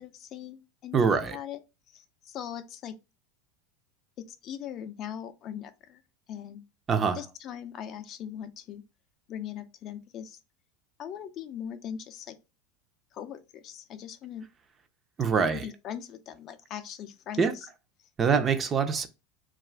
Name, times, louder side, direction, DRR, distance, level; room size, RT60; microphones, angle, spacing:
voice 1, 0.0-1.6 1.9-2.9 4.3-6.0 6.3-6.6 7.1-8.8 9.3-10.4 11.0-12.4 13.1-14.5 15.3-17.7, left 9 dB, 45° left, 0.4 m, -40 dB
voice 2, 0.9-1.4 6.9-7.2 15.2-15.6 17.4-17.5 18.2-19.1, right 5 dB, 30° right, 0.4 m, -24 dB
2.4 x 2.3 x 3.2 m
hypercardioid pair, 105°, 0 cm